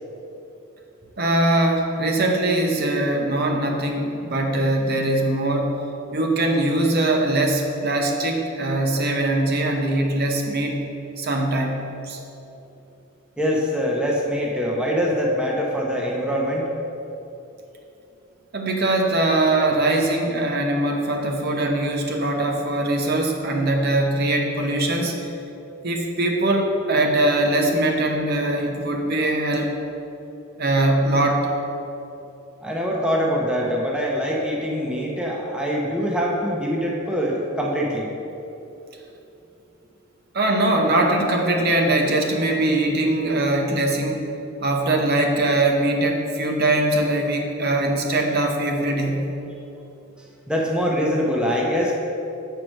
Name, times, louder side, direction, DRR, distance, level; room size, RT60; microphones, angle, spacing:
voice 1, 1.2-5.7 6.1-10.8 11.2-11.8 12.0-12.2 18.5-25.3 25.8-29.8 30.6-31.5 40.3-44.3 44.6-49.3, right 1 dB, 45° right, 2 dB, 0.8 m, -21 dB
voice 2, 13.4-16.7 32.6-38.1 50.5-51.9, equal, 5° right, -2 dB, 0.7 m, -23 dB
7.6 x 4.6 x 6.3 m, 2.9 s
head